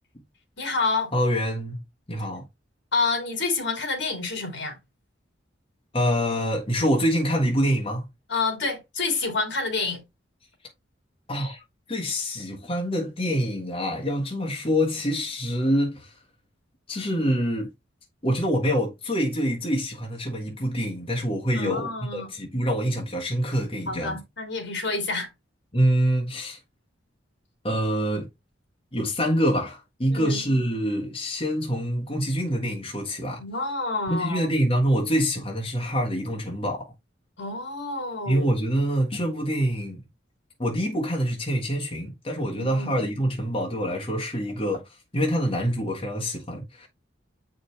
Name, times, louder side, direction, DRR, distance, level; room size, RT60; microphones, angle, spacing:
voice 1, 0.6-1.1 2.9-4.8 8.3-10.0 21.5-22.3 23.9-25.3 30.1-30.4 33.4-34.5 37.4-38.5 42.6-43.1, left 3 dB, 65° left, 2.8 m, -28 dB
voice 2, 1.1-1.8 2.1-2.4 5.9-8.1 11.3-11.6 11.9-16.2 16.9-17.7 18.2-24.2 25.7-26.6 27.6-28.3 28.9-33.4 34.1-36.9 38.2-40.0 40.6-46.9, equal, 30° left, 1.6 m, -25 dB
7.9 x 5.2 x 3.3 m
head